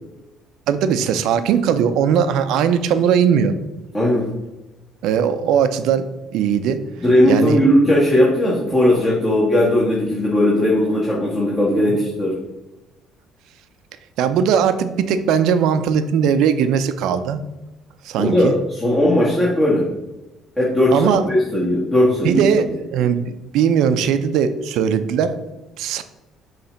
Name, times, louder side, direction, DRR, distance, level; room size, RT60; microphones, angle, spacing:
voice 1, 0.7-3.6 5.0-6.1 6.3-6.8 7.3-7.6 11.8-12.0 14.2-17.4 18.0-18.5 20.9-21.2 22.0-25.4 25.8-26.0, right 7 dB, 75° right, 10 dB, 0.5 m, -19 dB
voice 2, 3.9-4.3 7.0-12.4 18.2-19.9 20.6-22.7, left 1 dB, 15° left, -6 dB, 1.6 m, -17 dB
7.0 x 3.3 x 5.1 m, 1.0 s
cardioid pair, 120°, 0 cm